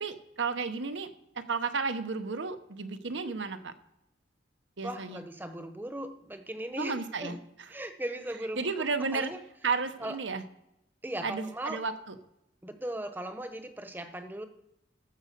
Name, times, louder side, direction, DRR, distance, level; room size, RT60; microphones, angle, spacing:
voice 1, 0.0-1.1 1.3-3.7 4.8-5.2 6.8-7.4 8.6-9.3 9.6-10.4 11.2-12.1, right 4 dB, 85° right, 10 dB, 1.0 m, -32 dB
voice 2, 4.8-7.4 7.7-8.7 9.1-9.4 10.0-10.2 11.0-11.8 12.6-14.5, right 1 dB, 10° right, 9 dB, 0.9 m, -38 dB
14.5 x 5.2 x 6.7 m, 0.83 s
head